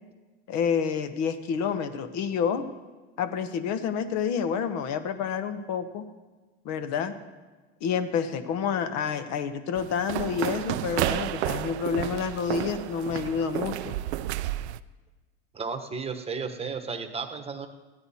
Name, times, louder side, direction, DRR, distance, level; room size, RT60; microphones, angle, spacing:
voice 1, 0.5-2.7 3.2-6.0 6.6-7.1 7.8-14.0, left 7 dB, 55° left, 10 dB, 1.0 m, -29 dB
sound 1, 9.8-14.8, right 14 dB, 85° right, 0.5 m, -31 dB
voice 2, 15.5-17.7, right 5 dB, 20° right, 6 dB, 1.1 m, -33 dB
14.5 x 10.0 x 4.2 m, 1.3 s
hypercardioid pair, 100°, 32 cm